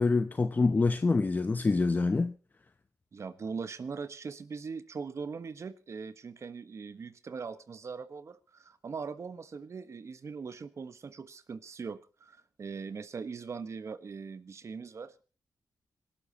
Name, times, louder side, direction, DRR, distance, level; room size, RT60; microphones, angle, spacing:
voice 1, 0.0-2.3, left 3 dB, 30° left, 0.8 m, -26 dB
voice 2, 3.1-15.2, right 5 dB, 50° right, 1.3 m, -41 dB
26.5 x 12.0 x 3.0 m
wide cardioid pair, 115°, 6 cm